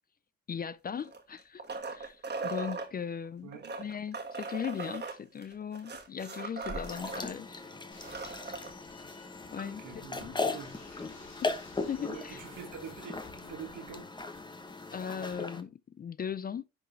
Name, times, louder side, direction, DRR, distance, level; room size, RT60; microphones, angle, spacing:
voice 1, 0.5-1.6 1.9-3.5 3.8-7.6 9.5-10.3 11.4-11.6 11.8-12.4 14.9-16.7, left 7 dB, 30° left, 0.4 m, -38 dB
sound 1, 1.0-2.9 3.5-7.2 7.6-7.7 7.9-8.7 10.2-10.3, right 4 dB, 35° right, 1.8 m, -39 dB
voice 2, 3.4-3.8 9.6-10.7 12.0-14.1, right 7 dB, 80° right, 2.5 m, -45 dB
sound 2, 6.8-15.6, left 3 dB, 15° left, 1.0 m, -38 dB
sound 3, 7.9-15.3, left 5 dB, 65° left, 3.0 m, -56 dB
10.5 x 3.8 x 3.2 m
cardioid pair, 90°, 30 cm